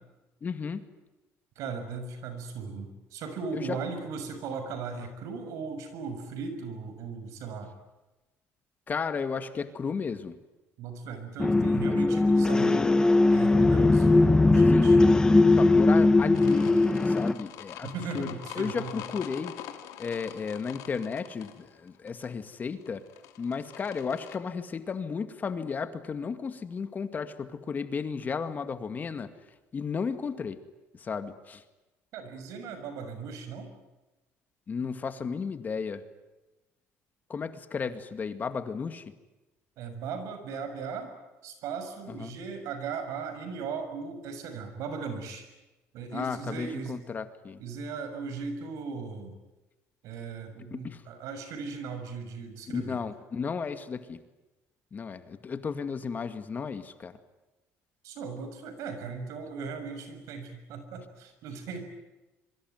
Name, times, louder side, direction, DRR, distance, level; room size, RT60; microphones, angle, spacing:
voice 1, 0.4-0.8 3.5-3.8 8.9-10.4 11.9-12.0 14.7-15.1 15.6-19.5 20.0-23.0 23.4-29.3 29.7-30.6 31.0-31.6 34.7-36.0 37.3-39.0 42.1-42.3 46.1-47.6 50.7-51.0 52.7-54.2 54.9-57.2, left 5 dB, 30° left, 10 dB, 2.1 m, -34 dB
voice 2, 1.5-7.7 10.8-12.9 13.3-14.1 14.4-15.0 17.8-19.0 32.1-33.7 39.8-41.1 41.4-45.4 45.9-47.0 47.6-49.4 50.0-53.0 58.0-61.9, right 5 dB, 75° right, 8 dB, 6.6 m, -37 dB
sound 1, 11.4-17.3, left 2 dB, 15° left, 1.4 m, -20 dB
sound 2, 16.3-24.4, left 11 dB, 80° left, 2.8 m, -45 dB
26.0 x 24.0 x 9.5 m, 1.1 s
cardioid pair, 115°, 6 cm